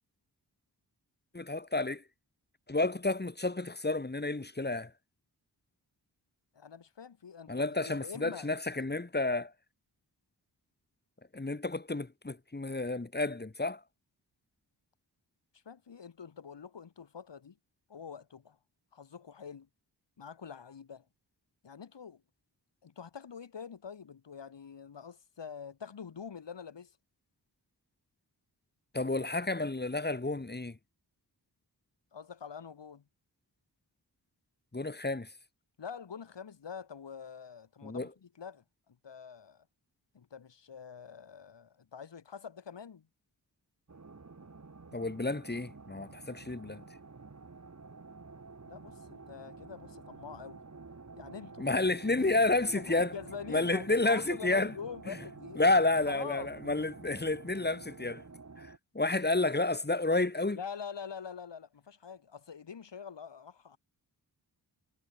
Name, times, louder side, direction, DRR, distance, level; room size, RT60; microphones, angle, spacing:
voice 1, 1.3-2.0 2.7-4.9 7.5-9.5 11.3-13.8 28.9-30.8 34.7-35.3 37.8-38.1 44.9-46.8 51.6-53.1 53.5-54.7 55.1-55.2 55.6-58.2 58.6-60.6, left 2 dB, 25° left, 2.9 m, -30 dB
voice 2, 6.5-8.8 15.5-17.6 17.9-18.6 18.9-19.7 20.2-21.1 21.6-22.2 22.8-27.0 32.1-33.0 35.8-39.7 40.1-43.1 48.7-50.6 51.2-51.7 52.1-52.5 52.7-55.7 56.1-56.5 60.6-63.8, left 6 dB, 80° left, 3.7 m, -45 dB
sound 1, 43.9-58.8, right 4 dB, 40° right, 4.5 m, -49 dB
wide cardioid pair, 95°, 42 cm